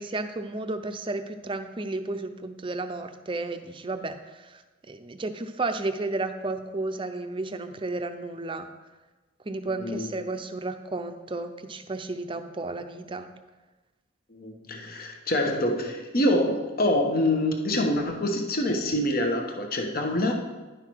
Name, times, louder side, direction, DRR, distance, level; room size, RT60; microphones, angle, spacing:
voice 1, 0.0-4.6 4.9-8.7 9.5-13.3, right 2 dB, 25° right, 8 dB, 0.6 m, -33 dB
voice 2, 9.8-10.1 14.3-20.4, left 1 dB, 50° left, 3 dB, 1.1 m, -26 dB
10.5 x 5.8 x 4.6 m, 1.2 s
head